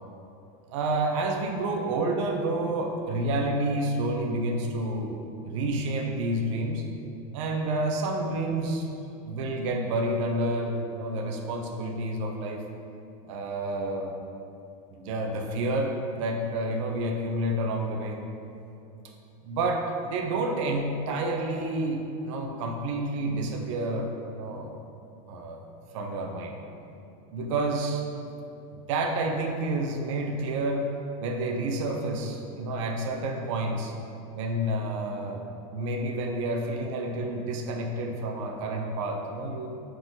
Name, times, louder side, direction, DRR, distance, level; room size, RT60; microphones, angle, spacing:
voice 1, 0.7-5.2 5.4-6.9 7.3-8.9 9.2-12.6 13.3-14.2 14.9-18.2 19.4-24.8 25.3-25.6 25.9-26.6 27.3-28.0 28.9-30.9 31.2-33.9 34.3-35.4 35.7-40.0, right 2 dB, 65° right, 2 dB, 1.0 m, -29 dB
8.0 x 4.8 x 4.0 m, 2.7 s
supercardioid pair, 155°, 17 cm